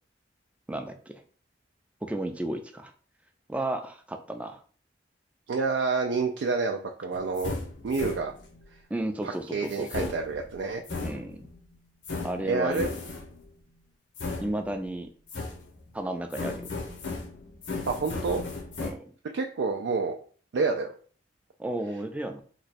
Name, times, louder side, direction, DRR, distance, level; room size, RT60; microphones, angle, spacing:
voice 1, 0.7-1.2 2.0-2.9 3.5-4.6 8.9-10.1 11.0-11.5 12.2-12.9 14.4-15.1 15.9-16.7 18.8-19.1 21.6-22.4, right 1 dB, 5° right, 6 dB, 0.4 m, -33 dB
voice 2, 5.5-7.5 7.8-8.3 9.2-10.8 12.4-12.9 17.9-18.4 19.3-20.2 20.5-20.9, right 4 dB, 80° right, 2 dB, 0.4 m, -28 dB
sound 1, 7.1-8.6 9.7-11.6 12.0-13.5 14.2-15.0 15.3-15.9 16.3-18.9, left 3 dB, 75° left, 0.8 m, -36 dB
3.0 x 2.2 x 4.1 m, 0.43 s
head